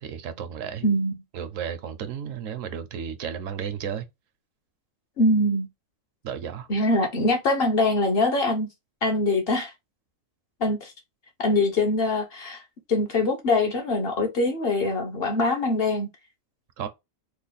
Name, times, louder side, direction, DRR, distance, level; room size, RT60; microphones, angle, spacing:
voice 1, 0.0-0.8 1.3-4.0 6.2-6.7 16.8-16.9, right 8 dB, 75° right, 1.0 m, -33 dB
voice 2, 0.8-1.2 5.2-5.7 6.7-8.7 9.0-9.7 10.6-10.9 11.4-12.6 12.9-16.1, left 2 dB, 50° left, 0.9 m, -23 dB
3.2 x 2.2 x 3.9 m
omnidirectional pair, 1.4 m